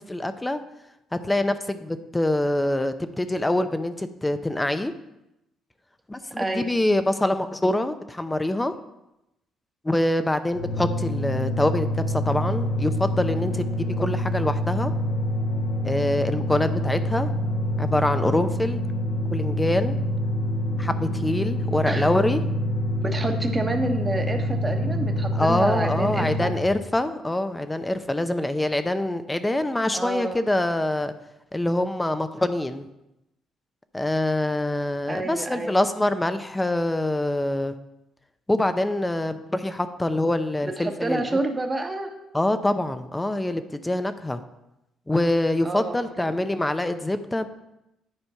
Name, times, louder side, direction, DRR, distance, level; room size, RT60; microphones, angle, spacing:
voice 1, 0.1-0.6 1.1-4.9 6.1-8.7 9.8-14.9 15.8-17.3 17.8-18.8 19.3-20.0 20.8-22.4 25.3-31.1 31.5-32.9 33.9-37.7 38.5-41.4 42.3-44.4 45.1-47.5, left 1 dB, 15° left, 10 dB, 0.7 m, -25 dB
voice 2, 6.4-6.7 21.8-22.1 23.0-26.5 29.9-30.4 35.1-35.7 40.6-42.1 45.6-46.3, right 2 dB, 20° right, 4 dB, 1.3 m, -28 dB
sound 1, 10.5-26.6, equal, 65° left, 1.4 m, -26 dB
9.7 x 4.4 x 5.6 m, 0.89 s
supercardioid pair, 70°, 0 cm